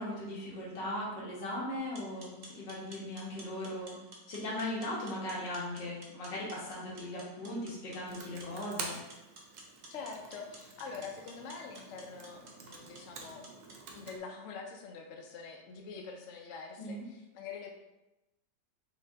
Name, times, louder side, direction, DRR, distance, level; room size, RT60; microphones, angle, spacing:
voice 1, 0.0-4.0 4.3-9.0 16.8-17.0, left 1 dB, 90° left, -5 dB, 1.9 m, -38 dB
sound 1, 1.8-13.8, right 2 dB, 50° right, 0.9 m, -54 dB
Computer keyboard, 8.1-14.2, right 4 dB, 80° right, 1.3 m, -48 dB
voice 2, 9.9-13.5 13.9-17.7, left 5 dB, 65° left, 2 dB, 0.8 m, -45 dB
5.1 x 2.8 x 3.5 m, 0.97 s
omnidirectional pair, 1.9 m